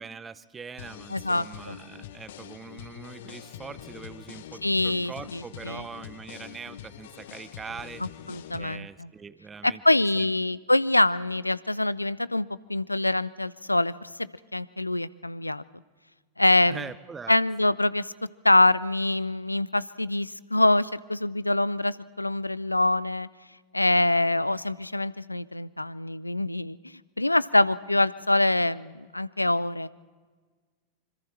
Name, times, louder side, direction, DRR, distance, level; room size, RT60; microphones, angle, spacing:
voice 1, 0.0-8.0 8.6-9.8 10.2-10.3 16.7-17.4, right 5 dB, 15° right, 17 dB, 0.8 m, -42 dB
sound 1, 0.8-8.8, left 10 dB, 55° left, 1.2 m, -44 dB
voice 2, 1.1-1.8 4.6-5.8 8.3-9.1 9.6-14.1 14.5-15.6 16.4-16.9 17.3-18.1 18.4-23.3 23.7-29.9, left 2 dB, 85° left, 20 dB, 0.5 m, -25 dB
26.0 x 26.0 x 4.4 m, 1.4 s
figure-of-eight pair, 90°, 0 cm